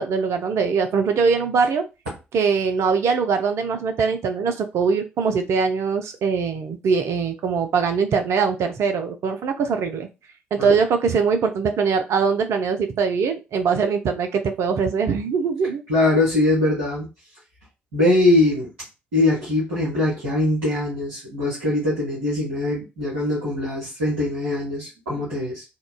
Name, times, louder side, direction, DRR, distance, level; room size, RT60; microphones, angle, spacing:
voice 1, 0.0-1.8 2.3-10.1 10.5-15.8, right 5 dB, 60° right, 6 dB, 0.5 m, -22 dB
voice 2, 15.9-17.1 17.9-18.7 19.1-25.6, left 2 dB, 85° right, -8 dB, 1.0 m, -22 dB
3.6 x 2.4 x 2.2 m, 0.28 s
figure-of-eight pair, 40°, 6 cm